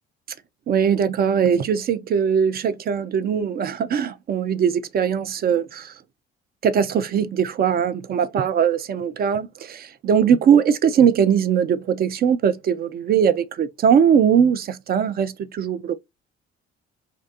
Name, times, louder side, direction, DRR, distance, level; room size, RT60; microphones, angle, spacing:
voice 1, 0.7-5.9 6.6-16.0, right 7 dB, 30° right, 0.4 m, -20 dB
2.5 x 2.2 x 2.7 m
figure-of-eight pair, 50°, 32 cm